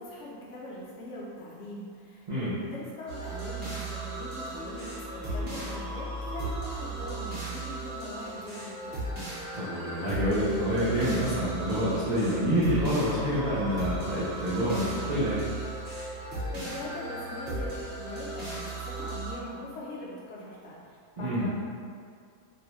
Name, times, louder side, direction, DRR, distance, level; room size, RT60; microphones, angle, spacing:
voice 1, 0.0-9.1 16.5-21.6, left 1 dB, 65° left, -6 dB, 0.8 m, -41 dB
sound 1, 3.1-19.3, right 2 dB, 40° right, 1.0 m, -36 dB
voice 2, 9.5-15.5 21.2-21.5, equal, 75° right, -10 dB, 0.4 m, -27 dB
2.6 x 2.1 x 2.9 m, 2.2 s
omnidirectional pair, 1.4 m